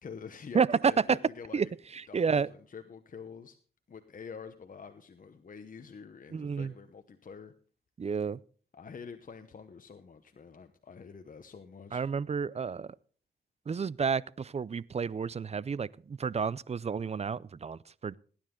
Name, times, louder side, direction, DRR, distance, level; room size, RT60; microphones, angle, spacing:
voice 1, 0.0-1.7 2.1-3.6 3.9-7.5 8.7-12.0, left 6 dB, 50° left, 1.0 m, -47 dB
voice 2, 0.5-1.2 1.5-1.7 2.1-2.5 6.3-6.7 8.0-8.4 11.9-12.9 13.7-18.1, right 6 dB, 35° right, 0.5 m, -30 dB
18.0 x 10.0 x 3.7 m
cardioid pair, 55°, 18 cm